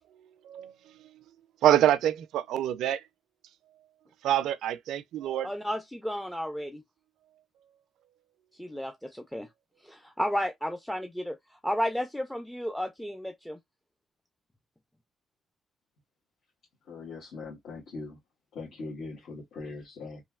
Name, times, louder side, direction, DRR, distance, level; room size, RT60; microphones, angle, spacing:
voice 1, 1.6-3.0 4.2-5.5, right 11 dB, 85° right, 0.3 m, -25 dB
voice 2, 5.4-6.8 8.6-9.5 9.8-13.6, equal, 5° left, 0.4 m, -33 dB
voice 3, 16.9-18.2 18.5-20.2, left 3 dB, 70° left, 1.4 m, -41 dB
3.1 x 2.6 x 2.3 m
cardioid pair, 90°, 0 cm